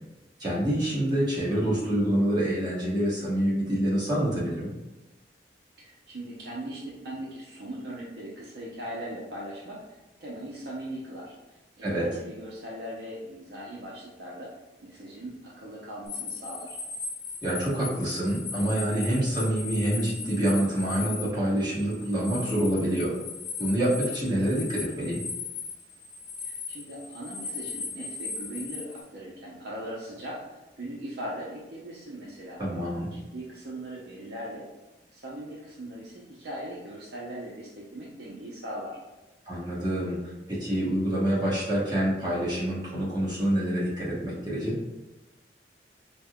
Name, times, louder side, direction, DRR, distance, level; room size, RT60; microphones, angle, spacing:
voice 1, 0.4-4.7 11.8-12.1 17.4-23.1 23.6-25.2 32.6-33.1 39.5-44.8, right 1 dB, 25° right, -8 dB, 1.2 m, -27 dB
voice 2, 5.8-11.3 11.8-14.5 14.8-16.8 26.4-32.6 33.1-34.7 35.1-39.0, right 1 dB, 65° right, -5 dB, 0.6 m, -39 dB
sound 1, 16.1-29.0, left 4 dB, 35° left, 0.8 m, -38 dB
5.3 x 2.1 x 2.3 m, 1.0 s
head